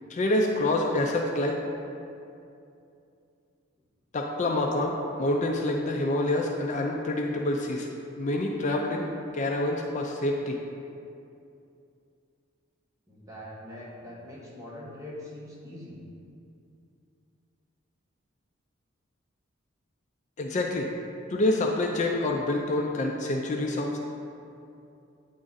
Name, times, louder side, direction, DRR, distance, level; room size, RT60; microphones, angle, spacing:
voice 1, 0.1-1.6 4.1-7.9 8.2-9.1 9.3-10.6 20.4-20.9 21.3-24.0, left 1 dB, 40° left, 1 dB, 0.4 m, -27 dB
voice 2, 13.1-16.0, left 1 dB, 15° right, -6 dB, 1.2 m, -42 dB
8.7 x 3.7 x 4.0 m, 2.6 s
head